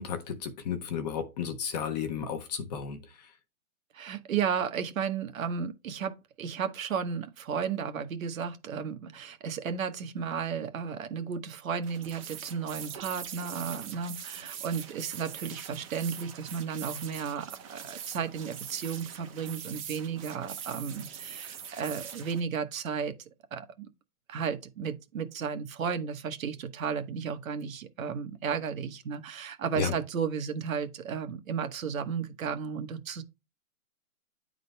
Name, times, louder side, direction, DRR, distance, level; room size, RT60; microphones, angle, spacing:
voice 1, 0.0-3.0 29.7-29.9, left 7 dB, 30° left, 0.8 m, -33 dB
voice 2, 3.9-23.1 23.5-23.9 24.3-33.2, right 7 dB, 65° right, 1.3 m, -34 dB
sound 1, 11.8-22.4, right 8 dB, 25° right, 0.7 m, -42 dB
9.2 x 3.9 x 3.3 m
hypercardioid pair, 155°, 44 cm